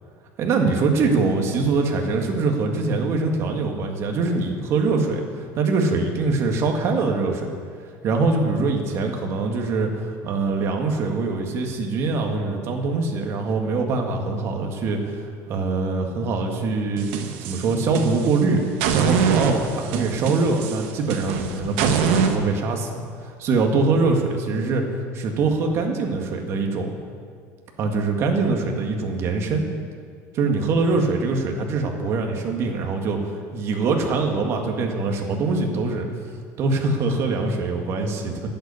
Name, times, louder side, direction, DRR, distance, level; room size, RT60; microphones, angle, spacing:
voice 1, 0.4-7.5 8.0-17.1 17.4-18.6 18.9-24.8 25.1-26.9 27.8-29.7 30.3-36.1 36.6-38.5, right 3 dB, 45° right, 2 dB, 1.9 m, -23 dB
sound 1, 17.0-18.4 18.8-22.3, right 6 dB, 90° right, 1.3 m, -24 dB
11.5 x 8.4 x 9.8 m, 2.1 s
cardioid pair, 140°, 6 cm